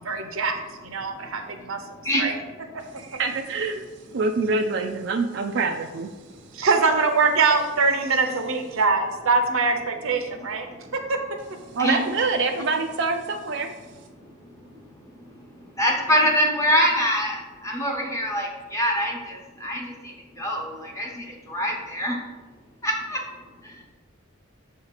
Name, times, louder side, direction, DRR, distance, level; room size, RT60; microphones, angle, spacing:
voice 1, 0.0-0.6 0.8-1.8 2.2-2.4 2.7-3.2 6.5-10.7 11.1-11.2, right 4 dB, 85° right, 5 dB, 0.8 m, -23 dB
voice 2, 3.2-3.9 4.1-6.1 11.7-13.7, right 3 dB, 55° right, 5 dB, 0.4 m, -25 dB
voice 3, 15.8-17.4 17.6-19.4 19.6-19.9 20.4-22.2 22.8-23.2, equal, 15° left, -1 dB, 0.9 m, -24 dB
6.7 x 2.9 x 5.6 m, 1.3 s
head